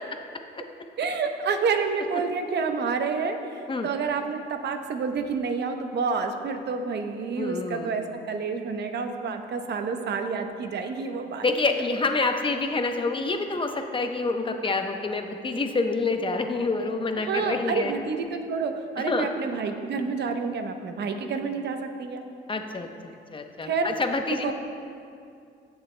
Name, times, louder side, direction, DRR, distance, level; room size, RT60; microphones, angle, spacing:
voice 1, 1.0-11.5 17.2-22.2 23.6-23.9 24.4-24.5, right 5 dB, 60° right, 6 dB, 0.8 m, -29 dB
voice 2, 7.4-7.9 11.4-17.9 19.1-19.3 22.5-24.5, left 3 dB, 25° left, 5 dB, 0.8 m, -27 dB
16.0 x 6.8 x 2.2 m, 2.4 s
cardioid pair, 90°, 20 cm